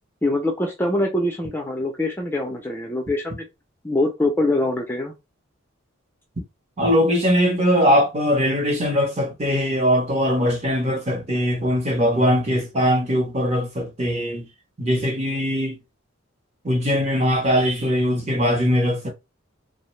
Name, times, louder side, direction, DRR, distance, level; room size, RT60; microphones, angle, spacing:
voice 1, 0.2-3.5 3.8-5.1, left 1 dB, 10° left, 0.3 m, -23 dB
voice 2, 6.8-14.4 14.8-15.8 16.6-19.1, equal, 30° right, 0.7 m, -21 dB
2.6 x 2.0 x 3.0 m
head